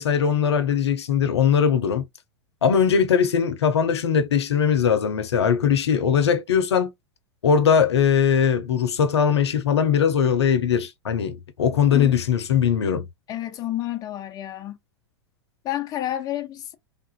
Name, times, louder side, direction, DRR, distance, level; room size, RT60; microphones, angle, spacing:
voice 1, 0.0-2.0 2.6-6.9 7.4-13.1, left 7 dB, 75° left, 0.6 m, -20 dB
voice 2, 13.3-14.8 15.6-16.7, left 13 dB, 25° left, 0.5 m, -29 dB
3.4 x 2.4 x 2.4 m
hypercardioid pair, 100°, 14 cm